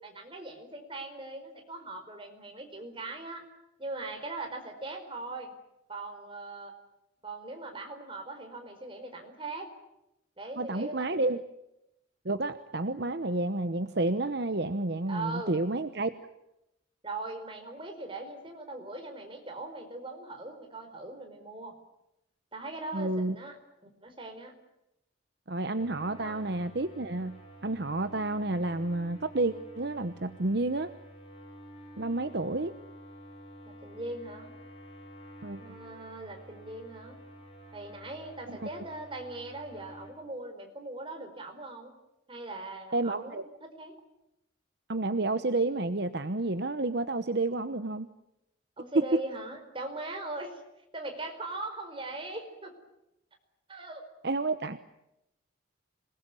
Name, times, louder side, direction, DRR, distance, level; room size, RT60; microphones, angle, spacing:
voice 1, 0.0-3.4 3.8-5.5 5.9-6.7 7.2-9.7 10.4-11.2 15.1-15.6 17.0-21.7 22.5-23.6 24.0-24.5 26.2-26.5 33.6-34.5 35.6-37.2 37.7-41.9 42.3-44.0 48.8-50.6 50.9-52.7 53.7-54.0, right 2 dB, 25° right, 4 dB, 4.8 m, -40 dB
voice 2, 10.6-11.4 12.2-16.1 22.9-23.4 25.5-27.4 27.6-30.9 32.0-32.7 35.4-35.6 38.5-38.7 42.9-43.4 44.9-48.1 49.1-49.2 54.2-54.8, right 2 dB, 55° right, 10 dB, 1.0 m, -30 dB
sound 1, 25.8-40.1, right 1 dB, 30° left, 6.0 m, -50 dB
27.0 x 20.5 x 9.7 m, 0.89 s
head